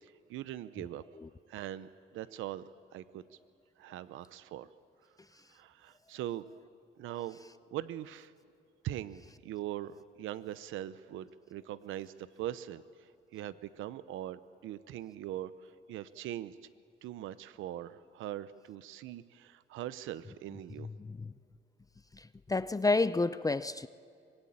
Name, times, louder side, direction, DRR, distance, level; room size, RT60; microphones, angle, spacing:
voice 1, 0.0-1.0 1.5-2.6 2.9-3.2 3.8-4.7 5.5-6.5 7.0-7.4 7.7-8.3 8.8-16.6 17.0-20.9, right 12 dB, 90° right, 15 dB, 0.8 m, -41 dB
voice 2, 22.5-23.9, left 3 dB, 15° left, 14 dB, 0.6 m, -29 dB
25.0 x 21.5 x 8.7 m, 2.4 s
cardioid pair, 90°, 20 cm